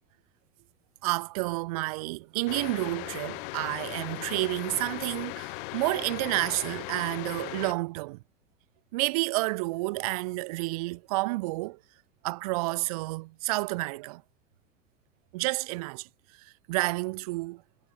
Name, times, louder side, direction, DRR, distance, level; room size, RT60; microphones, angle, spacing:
voice 1, 1.0-8.2 8.9-11.8 12.2-14.2 15.3-16.1 16.4-17.6, right 23 dB, 30° right, 0.4 m, -30 dB
sound 1, 2.5-7.7, left 27 dB, 40° left, 1.0 m, -38 dB
figure-of-eight pair, 95°, 40 cm